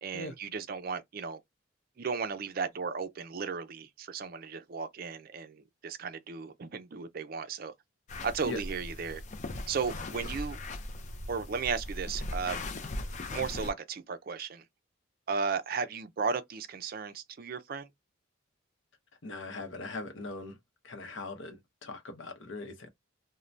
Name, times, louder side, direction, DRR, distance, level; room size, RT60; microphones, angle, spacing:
voice 1, 0.0-1.4 2.0-7.7 8.2-9.2 9.7-10.6 11.3-12.6 13.3-14.6 15.3-17.9, right 5 dB, 45° right, 0.4 m, -35 dB
sound 1, 8.1-13.7, left 2 dB, 35° left, 0.4 m, -39 dB
voice 2, 19.2-20.6 20.8-22.9, left 2 dB, 65° left, 0.7 m, -40 dB
2.5 x 2.1 x 3.2 m
head